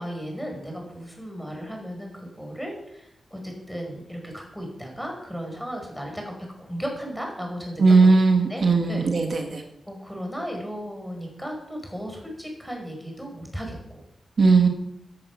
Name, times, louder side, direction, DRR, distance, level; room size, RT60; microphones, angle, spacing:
voice 1, 0.0-6.3 6.6-7.8 8.5-9.1 9.8-14.0, equal, ahead, 1 dB, 5.2 m, -35 dB
voice 2, 7.8-9.6 14.4-14.7, right 4 dB, 55° right, 3 dB, 1.9 m, -18 dB
16.5 x 10.5 x 6.0 m, 0.82 s
wide cardioid pair, 115°, 0 cm